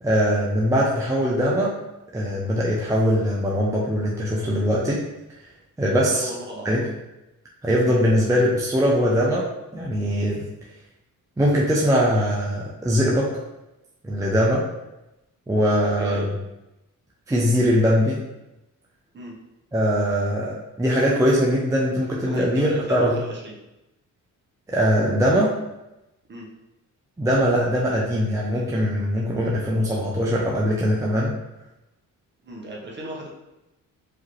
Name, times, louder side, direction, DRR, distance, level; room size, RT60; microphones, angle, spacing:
voice 1, 0.0-1.7 2.1-5.0 5.8-6.3 6.6-6.8 7.6-9.4 9.7-10.5 11.4-13.3 14.0-14.6 15.5-16.3 17.3-18.2 19.7-23.2 24.7-25.5 27.2-31.4, equal, 10° right, -4 dB, 0.5 m, -21 dB
voice 2, 5.9-6.7 15.8-16.4 19.1-19.3 22.3-23.6 26.3-26.5 32.4-33.3, right 1 dB, 35° right, -2 dB, 1.0 m, -35 dB
4.8 x 2.8 x 3.2 m, 0.93 s
cardioid pair, 140°, 33 cm